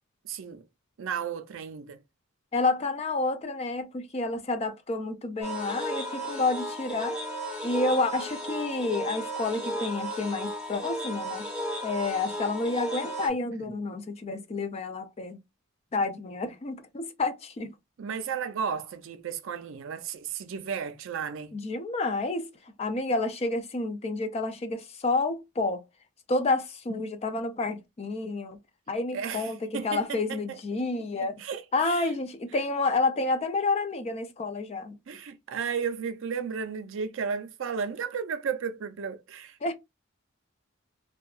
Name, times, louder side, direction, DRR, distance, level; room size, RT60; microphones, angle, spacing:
voice 1, 0.2-0.6 1.0-2.0 18.0-21.6 29.1-30.6 30.9-32.1 35.1-39.6, right 6 dB, 65° right, 0.4 m, -34 dB
voice 2, 2.5-7.2 7.6-11.5 11.8-15.4 15.9-17.7 21.5-22.5 22.8-25.8 26.3-28.6 28.9-31.4 31.7-35.0 39.6-39.7, left 3 dB, 30° left, 0.4 m, -29 dB
sound 1, 5.4-13.3, equal, 5° right, 0.8 m, -34 dB
2.6 x 2.2 x 2.3 m
head